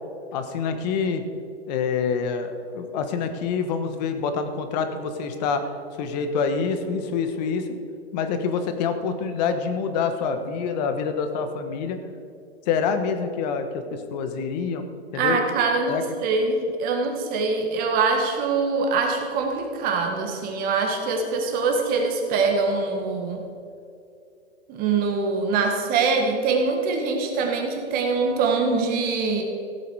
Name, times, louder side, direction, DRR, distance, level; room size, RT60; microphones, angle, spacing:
voice 1, 0.3-1.2 1.7-5.6 6.0-7.7 8.1-12.0 12.7-14.8 15.1-15.4 15.9-16.0, left 5 dB, 40° left, 8 dB, 1.3 m, -26 dB
voice 2, 15.1-16.0 16.2-23.4 24.7-29.4, right 4 dB, 25° right, 3 dB, 1.9 m, -23 dB
16.0 x 8.3 x 4.8 m, 2.5 s
hypercardioid pair, 145°, 33 cm